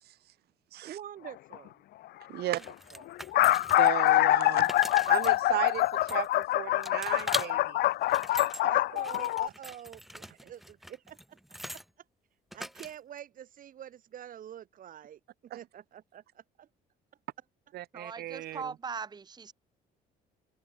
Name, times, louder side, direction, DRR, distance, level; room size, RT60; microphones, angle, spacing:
voice 1, 0.8-1.8 2.4-2.6 2.9-3.0 8.6-11.8 12.5-15.2 15.5-16.7, right 10 dB, 55° right, 2.7 m, -46 dB
risada do galo, 1.2-1.5 2.4-2.5 2.7-2.8 3.1-9.5, left 16 dB, 70° left, 0.7 m, -25 dB
voice 2, 2.3-2.6 3.8-7.8 8.3-8.4 15.5-15.6 17.7-18.7, right 14 dB, 70° right, 3.8 m, -36 dB
sound 1, 2.5-4.1 4.5-6.5 6.8-7.5 7.9-8.6 9.0-11.9 12.5-13.2, equal, ahead, 2.3 m, -42 dB
voice 3, 17.9-19.5, right 5 dB, 25° right, 1.1 m, -40 dB
cardioid pair, 110°, 17 cm